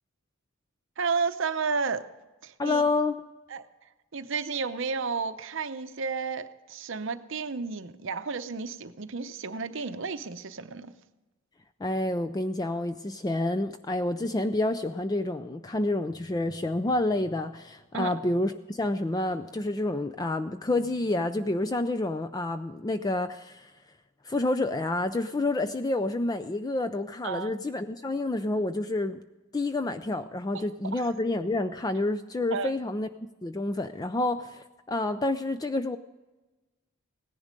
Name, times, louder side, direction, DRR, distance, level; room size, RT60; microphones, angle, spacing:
voice 1, 1.0-2.0 2.4-2.8 3.5-3.6 4.1-10.9 17.9-18.2 27.2-27.6 30.5-30.6 30.9-31.1 32.5-32.7, right 5 dB, 60° right, 11 dB, 0.7 m, -32 dB
voice 2, 2.6-3.2 11.8-23.7 24.3-29.2 29.5-33.1 33.4-36.0, left 2 dB, 20° left, 10 dB, 0.3 m, -29 dB
17.0 x 10.5 x 5.2 m, 1.1 s
head